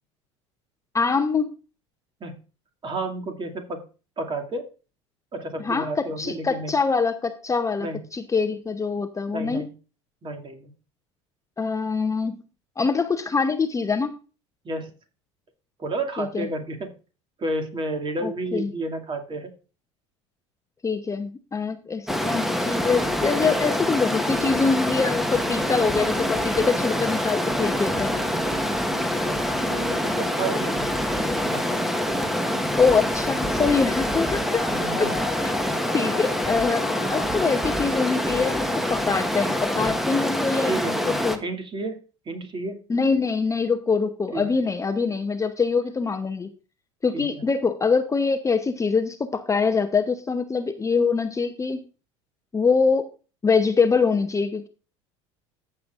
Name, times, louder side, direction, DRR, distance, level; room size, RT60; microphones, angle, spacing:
voice 1, 0.9-1.5 5.6-9.7 11.6-12.4 12.8-14.1 16.2-16.5 18.2-18.7 20.8-28.2 32.7-34.6 35.0-35.1 35.9-40.7 41.2-41.4 42.9-46.5 47.0-51.8 52.5-53.1 53.4-54.7, left 5 dB, 20° left, 9 dB, 0.8 m, -24 dB
voice 2, 2.8-3.8 4.2-4.6 5.3-6.7 7.8-8.0 9.3-9.7 10.2-10.7 14.6-14.9 15.8-16.9 17.4-19.5 29.7-31.8 34.7-35.1 40.7-41.0 41.4-42.0 42.3-42.8 44.3-44.6 47.1-47.3, right 2 dB, 30° right, 5 dB, 2.3 m, -31 dB
Stream, 22.1-41.4, equal, ahead, 1.2 m, -25 dB
Dog, 34.3-39.5 40.0-40.1, left 13 dB, 80° left, 1.3 m, -40 dB
14.5 x 7.1 x 2.5 m, 0.34 s
hypercardioid pair, 75°, 16 cm